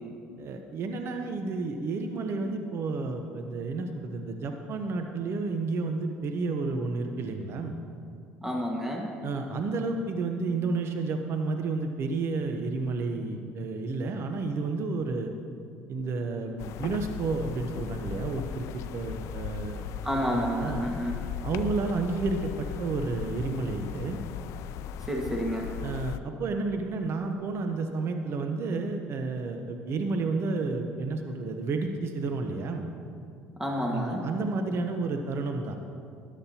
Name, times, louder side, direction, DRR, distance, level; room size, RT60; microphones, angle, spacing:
voice 1, 0.4-7.8 9.2-15.3 15.9-19.8 20.3-20.8 21.4-24.2 25.8-32.9 33.9-35.7, right 3 dB, 55° right, 5 dB, 0.9 m, -31 dB
voice 2, 8.4-9.1 20.0-21.1 25.1-25.7 33.6-34.2, equal, 10° right, -1 dB, 1.7 m, -29 dB
sound 1, 16.6-26.2, left 9 dB, 65° left, 0.4 m, -37 dB
13.5 x 11.0 x 2.9 m, 2.4 s
hypercardioid pair, 75°, 5 cm